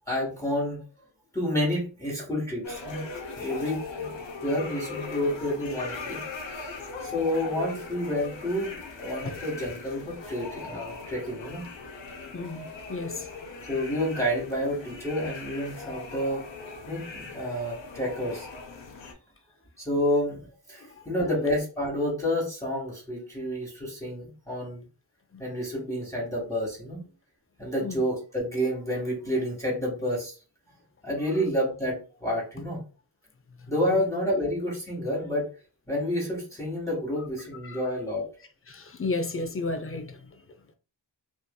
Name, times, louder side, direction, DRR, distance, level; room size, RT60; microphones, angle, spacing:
voice 1, 0.1-0.8 1.3-3.0 3.4-4.1 4.4-6.2 6.5-6.7 7.0-8.7 9.0-11.6 13.7-16.4 16.8-18.5 19.8-20.4 20.7-24.8 25.4-27.0 27.6-30.3 31.0-32.8 33.7-35.5 35.9-38.3, equal, 5° left, 1.4 m, -29 dB
sound 1, 2.6-19.1, left 3 dB, 80° left, 0.7 m, -39 dB
voice 2, 12.3-13.2 27.8-28.0 33.9-34.0 37.6-37.8 38.7-40.1, left 3 dB, 30° left, 0.5 m, -32 dB
2.6 x 2.5 x 2.2 m
cardioid pair, 45°, 45 cm